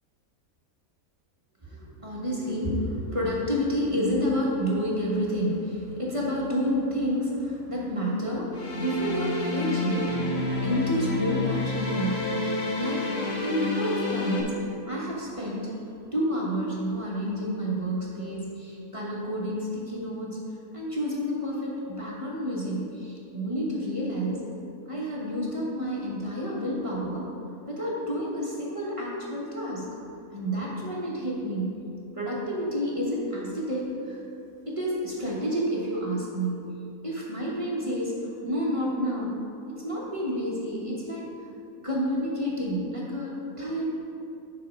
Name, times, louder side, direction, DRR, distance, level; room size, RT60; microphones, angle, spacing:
voice 1, 1.6-10.2 10.6-12.2 12.8-15.7 16.1-20.4 20.7-24.4 24.8-27.3 27.7-29.9 30.3-31.8 32.1-34.2 34.7-36.6 37.0-38.1 38.4-39.3 39.7-41.3 41.8-43.9, equal, 25° right, -5 dB, 1.2 m, -29 dB
sound 1, 8.5-14.4, left 2 dB, 55° left, 1.7 m, -29 dB
10.5 x 4.1 x 5.2 m, 2.8 s
omnidirectional pair, 1.5 m